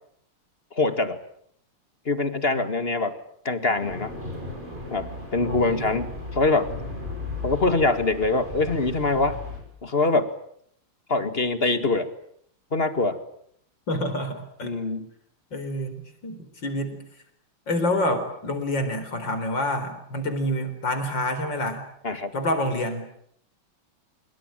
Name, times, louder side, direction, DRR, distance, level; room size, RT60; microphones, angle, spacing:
voice 1, 0.7-1.2 2.1-3.2 3.5-4.1 4.9-6.7 7.4-9.4 9.8-10.3 11.1-12.1 12.7-13.2 14.6-15.1 22.0-22.3, left 3 dB, 25° left, 10 dB, 2.0 m, -24 dB
sound 1, 3.8-9.6, left 2 dB, 20° right, 8.3 m, -36 dB
voice 2, 5.4-6.0 13.9-14.7 15.5-17.0 17.7-21.8 22.3-23.1, left 1 dB, 55° left, 8 dB, 5.0 m, -28 dB
26.0 x 23.5 x 9.1 m, 0.68 s
omnidirectional pair, 2.4 m